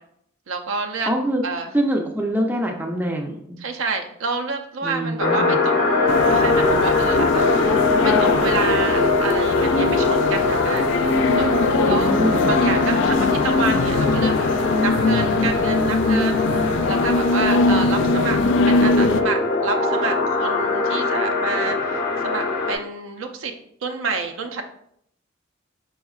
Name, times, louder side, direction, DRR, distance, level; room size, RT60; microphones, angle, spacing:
voice 1, 0.5-1.1 1.4-1.7 3.6-7.7 8.0-10.9 11.3-11.5 11.8-12.1 12.5-14.3 14.8-18.4 18.7-23.5 23.8-24.7, right 4 dB, 80° right, 4 dB, 0.6 m, -28 dB
voice 2, 1.1-1.4 1.7-3.6 4.8-5.6 11.9-12.6, right 1 dB, 10° right, 1 dB, 0.5 m, -24 dB
sound 1, 5.2-22.7, left 3 dB, 45° left, 0.8 m, -22 dB
sound 2, 6.1-19.2, left 3 dB, 60° left, 0.3 m, -21 dB
4.9 x 4.4 x 2.4 m, 0.69 s
head